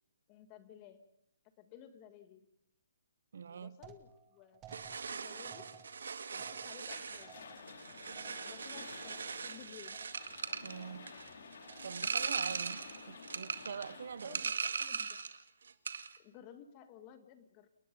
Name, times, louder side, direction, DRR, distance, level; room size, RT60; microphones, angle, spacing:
voice 1, 0.3-1.0 1.6-2.5 3.4-4.8 5.1-5.7 6.3-7.4 8.4-10.0 14.2-15.2 16.2-17.7, left 9 dB, 20° left, 1.8 m, -56 dB
voice 2, 3.3-3.8 10.6-11.1 11.8-14.4, right 6 dB, 60° right, 0.8 m, -44 dB
sound 1, 3.8-9.6 9.9-10.4 10.7-11.3 11.6-12.2 12.5-13.1, right 8 dB, 15° right, 1.3 m, -59 dB
sound 2, 4.7-15.4 15.7-16.2, right 5 dB, 75° right, 2.0 m, -40 dB
sound 3, 6.9-14.5, left 5 dB, 60° left, 3.9 m, -52 dB
29.5 x 19.5 x 5.4 m
hypercardioid pair, 170°, 0 cm